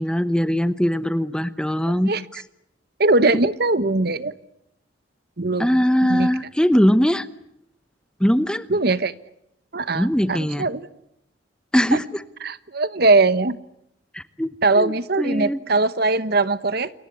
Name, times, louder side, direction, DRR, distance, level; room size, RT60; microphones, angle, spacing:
voice 1, 0.0-2.1 5.6-7.3 8.2-8.6 9.9-10.7 11.7-12.2 14.1-15.6, equal, 5° left, 13 dB, 1.0 m, -21 dB
voice 2, 1.9-2.2 3.0-4.3 5.4-5.7 6.1-6.3 8.7-9.1 9.7-10.9 11.9-12.0 12.4-13.6 14.6-16.9, right 3 dB, 55° right, 15 dB, 1.1 m, -20 dB
28.5 x 22.5 x 8.4 m, 0.80 s
head